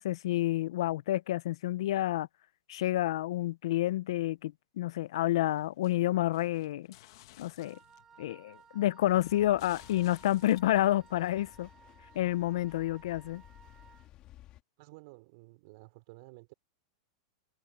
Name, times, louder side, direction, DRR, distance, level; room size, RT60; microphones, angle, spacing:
voice 1, 0.0-2.3 2.7-6.9 7.4-7.8 8.2-11.7 12.2-13.4, left 14 dB, 70° left, 0.5 m, -29 dB
sound 1, 5.1-8.2 8.5-10.6, left 17 dB, 50° left, 1.2 m, -56 dB
Wind instrument woodwind instrument, 7.6-14.1, right 6 dB, 15° right, 2.2 m, -59 dB
sound 2, 9.0-14.6, left 14 dB, 30° left, 2.1 m, -57 dB
voice 2, 14.8-16.5, right 23 dB, 45° right, 3.3 m, -53 dB
supercardioid pair, 165°, 3 cm